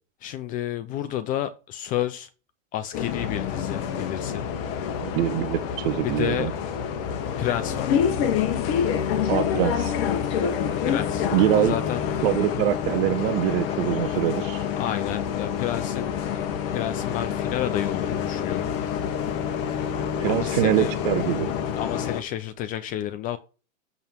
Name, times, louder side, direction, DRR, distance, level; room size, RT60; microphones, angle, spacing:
voice 1, 0.2-2.3 2.7-4.5 6.0-6.5 7.4-8.0 10.8-12.0 14.8-16.1 16.7-18.7 20.3-20.9 21.8-23.4, left 12 dB, 20° left, 0.4 m, -30 dB
Bus, 2.9-22.2, left 8 dB, 40° left, 1.4 m, -27 dB
voice 2, 5.0-6.5 9.3-9.9 11.3-11.7 12.2-14.6 20.2-21.5, right 13 dB, 45° right, 1.2 m, -24 dB
7.0 x 5.5 x 4.5 m
hypercardioid pair, 120°, 39 cm